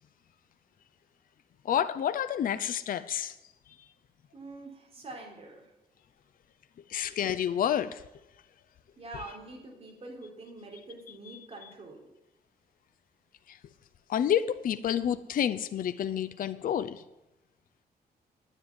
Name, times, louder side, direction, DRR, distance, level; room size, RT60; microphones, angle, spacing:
voice 1, 1.6-3.4 3.7-3.9 6.9-8.0 13.5-13.6 14.1-17.0, left 9 dB, 60° left, 0.6 m, -29 dB
voice 2, 4.3-5.7 9.0-12.1, right 2 dB, 40° right, 3.9 m, -45 dB
9.9 x 9.6 x 9.2 m
wide cardioid pair, 135°, 16 cm